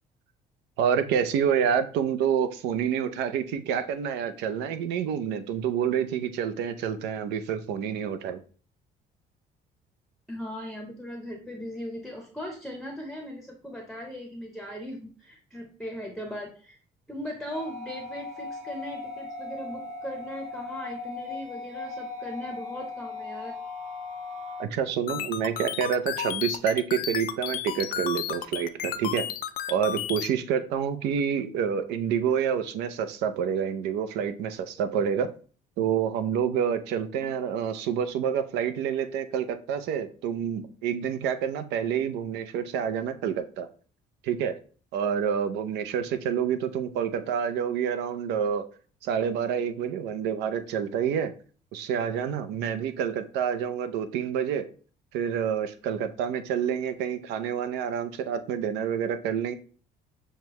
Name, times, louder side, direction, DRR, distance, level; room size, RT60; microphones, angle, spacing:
voice 1, 0.8-8.4 24.6-29.3 29.7-35.3 35.8-43.7 44.2-44.5 44.9-48.7 49.0-51.3 51.7-54.6 55.1-59.5, right 8 dB, 90° right, 11 dB, 0.5 m, -28 dB
voice 2, 10.3-16.8 17.1-23.6 37.2-37.3, equal, ahead, 2 dB, 0.7 m, -38 dB
sound 1, 17.5-24.7, left 3 dB, 45° right, 0.7 m, -38 dB
sound 2, 25.1-30.3, left 10 dB, 60° left, 0.4 m, -32 dB
6.5 x 2.2 x 2.9 m, 0.41 s
cardioid pair, 110°, 17 cm